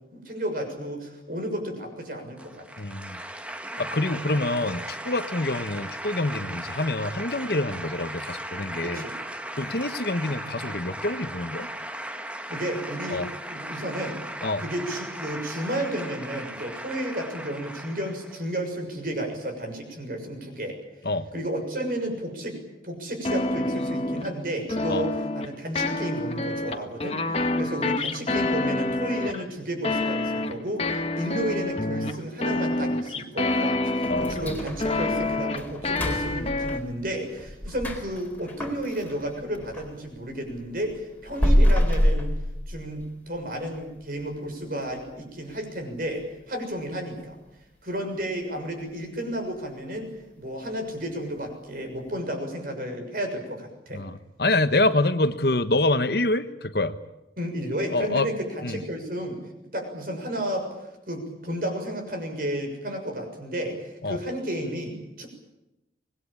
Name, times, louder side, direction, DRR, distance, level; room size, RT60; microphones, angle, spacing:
voice 1, 0.1-2.7 8.8-9.1 12.5-13.2 13.5-14.2 14.6-20.8 21.3-22.6 22.8-42.3 42.7-47.4 47.8-50.1 50.4-54.0 57.4-59.4 59.7-65.3, right 1 dB, 50° right, 4 dB, 6.7 m, -32 dB
sound 1, 2.4-18.4, right 1 dB, 5° right, 1.3 m, -37 dB
voice 2, 2.8-3.2 3.8-9.1 9.5-11.7 13.1-13.3 14.4-14.6 21.0-21.3 24.9-25.0 34.1-34.6 53.9-57.0 57.9-58.3 58.6-58.8 64.0-64.2, left 2 dB, 55° left, 10 dB, 1.3 m, -26 dB
sound 2, 23.2-24.3 24.7-25.5 25.8-29.4 29.8-34.5 34.8-36.8, left 2 dB, 35° left, 1.5 m, -27 dB
sound 3, 34.0-40.0 40.3-43.2 43.5-43.6 44.1-44.2 44.8-45.1 45.4-45.5 46.0-46.1, equal, 10° left, 3.9 m, -27 dB
25.0 x 21.0 x 8.9 m, 0.93 s
head